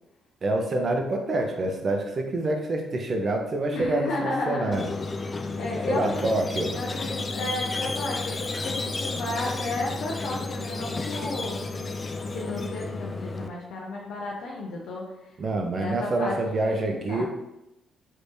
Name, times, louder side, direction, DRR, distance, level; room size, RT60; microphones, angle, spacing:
voice 1, 0.4-4.9 5.9-6.8 15.4-17.3, right 2 dB, 45° right, 3 dB, 0.6 m, -26 dB
voice 2, 3.7-4.8 5.6-6.3 6.7-11.6 12.3-15.0 15.8-17.3, left 2 dB, 85° left, -2 dB, 0.5 m, -33 dB
Squeak, 4.7-13.5, left 3 dB, 30° left, 0.3 m, -32 dB
3.3 x 3.3 x 2.7 m, 0.90 s
cardioid pair, 90°, 0 cm